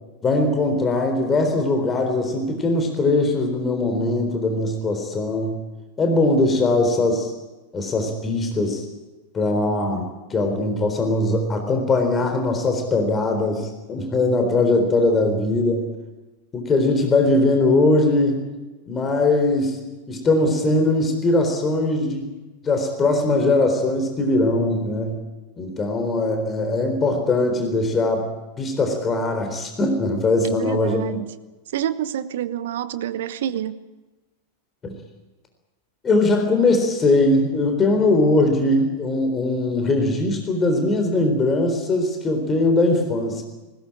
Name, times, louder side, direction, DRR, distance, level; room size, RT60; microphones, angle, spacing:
voice 1, 0.2-5.6 6.0-7.3 7.7-8.8 9.3-15.9 16.5-18.4 18.9-19.8 20.1-22.3 22.6-25.2 25.6-28.3 28.6-31.0 34.8-34.9 36.0-43.4, left 2 dB, 20° left, 5 dB, 4.0 m, -20 dB
voice 2, 30.4-31.3 31.7-33.8, right 10 dB, 55° right, 15 dB, 1.1 m, -28 dB
20.0 x 18.5 x 8.8 m, 1.1 s
figure-of-eight pair, 90°, 0 cm